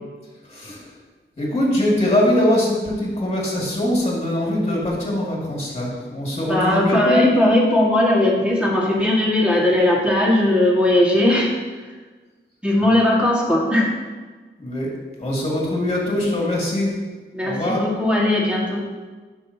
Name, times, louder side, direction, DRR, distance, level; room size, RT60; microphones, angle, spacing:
voice 1, 0.5-0.8 1.4-7.2 14.6-14.9 15.2-16.9 17.4-17.8, left 1 dB, 30° left, -4 dB, 2.3 m, -22 dB
voice 2, 6.5-11.5 12.6-13.9 17.3-18.8, left 1 dB, 5° right, -4 dB, 1.9 m, -18 dB
10.5 x 5.9 x 2.9 m, 1.4 s
wide cardioid pair, 115°, 21 cm